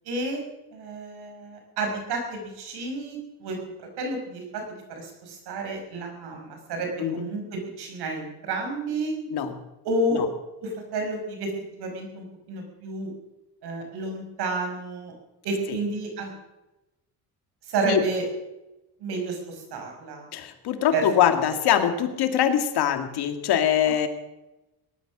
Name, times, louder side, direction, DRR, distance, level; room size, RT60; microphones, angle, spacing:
voice 1, 0.1-0.4 0.7-3.6 4.0-9.1 9.8-10.2 10.6-13.1 13.6-15.1 15.4-16.3 17.6-18.2 19.0-20.2 20.9-21.0, right 2 dB, 80° right, 3 dB, 5.4 m, -30 dB
voice 2, 20.3-24.1, left 10 dB, 75° left, 7 dB, 2.2 m, -23 dB
18.5 x 12.0 x 6.2 m, 0.99 s
cardioid pair, 90°, 39 cm